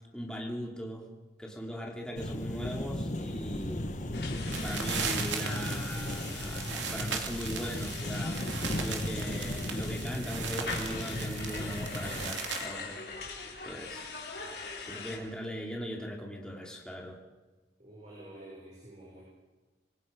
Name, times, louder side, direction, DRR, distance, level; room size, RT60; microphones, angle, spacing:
voice 1, 0.1-1.1 1.4-3.9 4.6-8.4 8.8-13.0 13.6-14.1 14.8-17.2, equal, 5° left, -1 dB, 2.8 m, -39 dB
sound 1, 2.2-12.3, left 1 dB, 40° left, 1.3 m, -36 dB
sound 2, 4.1-15.2, left 4 dB, 60° left, 3.8 m, -42 dB
sound 3, 4.4-12.7, right 6 dB, 85° right, 2.7 m, -38 dB
voice 2, 17.8-19.2, right 1 dB, 40° right, -5 dB, 6.0 m, -49 dB
26.0 x 19.5 x 5.2 m, 1.2 s
head